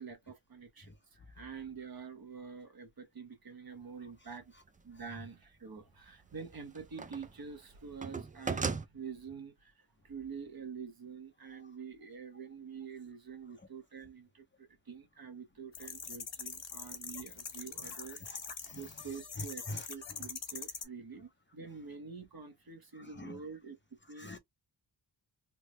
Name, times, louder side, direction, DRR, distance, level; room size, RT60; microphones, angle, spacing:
voice 1, 0.0-4.5 4.8-18.2 18.7-23.8 24.1-24.4, right 6 dB, 45° right, 0.9 m, -47 dB
sound 1, 4.3-4.4 6.1-7.4 7.6-8.9, right 4 dB, 20° right, 0.3 m, -37 dB
sound 2, 15.7-20.8, left 6 dB, 65° left, 1.1 m, -43 dB
voice 2, 17.8-18.9 19.4-20.2 22.9-23.4 24.2-24.4, left 1 dB, 25° left, 0.6 m, -46 dB
3.4 x 2.0 x 3.1 m
wide cardioid pair, 90°, 48 cm